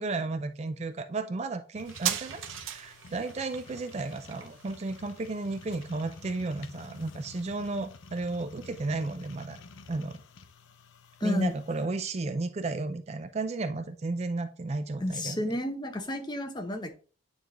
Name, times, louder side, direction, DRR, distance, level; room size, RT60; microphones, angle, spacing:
voice 1, 0.0-9.6 9.9-10.2 11.2-15.4, right 3 dB, 30° right, 0.4 m, -33 dB
sound 1, 1.7-11.9, left 4 dB, 70° left, 0.6 m, -50 dB
sound 2, 1.9-9.0 9.2-9.3, right 10 dB, 75° right, 0.7 m, -40 dB
voice 2, 11.2-11.5 15.0-17.0, left 1 dB, 20° left, 0.7 m, -31 dB
9.1 x 3.3 x 3.7 m
head